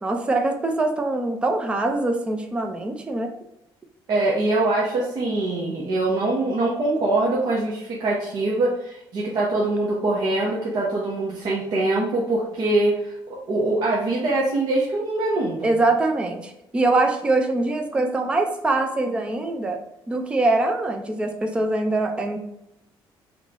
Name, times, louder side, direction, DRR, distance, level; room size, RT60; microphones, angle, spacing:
voice 1, 0.0-3.3 15.6-19.8 20.1-22.4, right 2 dB, 10° right, 5 dB, 0.4 m, -23 dB
voice 2, 4.1-13.1 13.5-15.7, right 2 dB, 50° right, -5 dB, 0.9 m, -23 dB
3.7 x 3.1 x 4.0 m, 0.84 s
cardioid pair, 180°, 9 cm